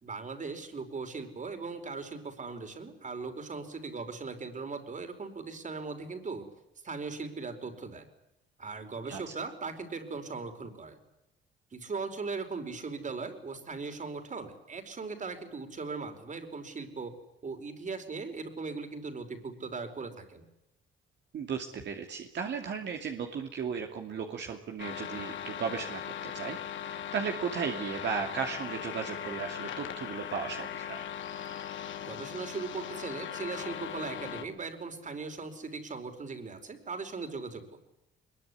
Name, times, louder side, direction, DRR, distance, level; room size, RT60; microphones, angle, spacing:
voice 1, 0.0-6.4 6.8-8.1 8.6-11.0 11.7-17.1 17.4-20.5 32.0-37.8, right 4 dB, 40° right, 8 dB, 4.9 m, -39 dB
voice 2, 21.3-26.6 26.8-31.1, right 6 dB, 60° right, 3 dB, 2.7 m, -35 dB
sound 1, 24.8-34.4, left 9 dB, 75° left, 2.7 m, -39 dB
23.0 x 22.0 x 9.9 m, 0.89 s
cardioid pair, 90°, 20 cm